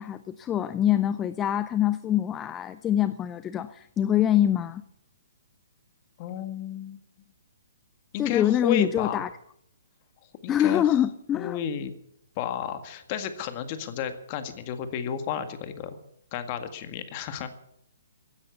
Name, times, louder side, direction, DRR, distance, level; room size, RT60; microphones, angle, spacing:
voice 1, 0.0-4.8 8.2-9.3 10.5-11.6, left 11 dB, 15° left, 13 dB, 0.5 m, -24 dB
voice 2, 6.2-7.0 8.1-9.3 10.4-11.0 11.3-11.9 12.4-16.0 16.3-17.5, left 9 dB, 35° left, 9 dB, 1.8 m, -32 dB
16.5 x 9.7 x 8.1 m, 0.72 s
hypercardioid pair, 150°, 0 cm